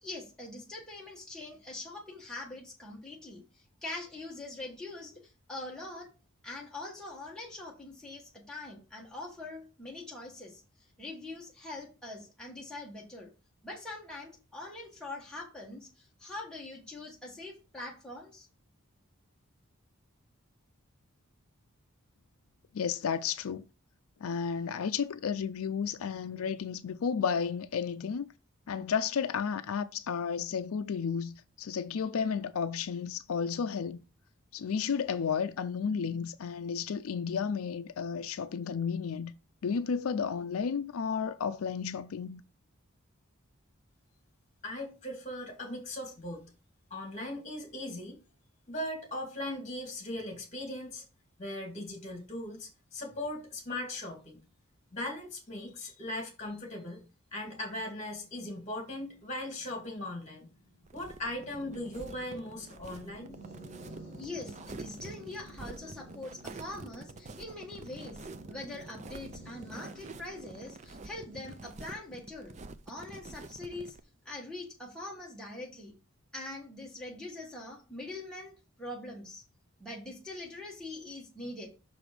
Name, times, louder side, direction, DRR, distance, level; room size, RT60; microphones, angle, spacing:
voice 1, 0.0-3.4 3.8-5.2 5.5-6.1 6.4-10.6 11.0-13.3 13.6-18.5 64.1-68.2 68.5-72.5 72.9-74.0 74.2-75.9 76.3-78.5 78.8-79.4 79.8-81.7, left 2 dB, 5° left, 1.6 m, -43 dB
voice 2, 22.7-23.6 24.2-28.3 28.7-34.0 34.5-39.3 39.6-42.4, left 6 dB, 85° left, 0.4 m, -32 dB
voice 3, 44.6-46.5 46.9-48.2 48.7-51.0 51.4-54.4 54.9-57.0 57.3-60.5 60.9-63.3, left 1 dB, 30° left, 2.4 m, -39 dB
sound 1, 58.0-73.4, right 1 dB, 55° right, 3.3 m, -53 dB
sound 2, 60.8-74.0, right 3 dB, 30° right, 0.4 m, -47 dB
6.2 x 5.0 x 5.0 m
head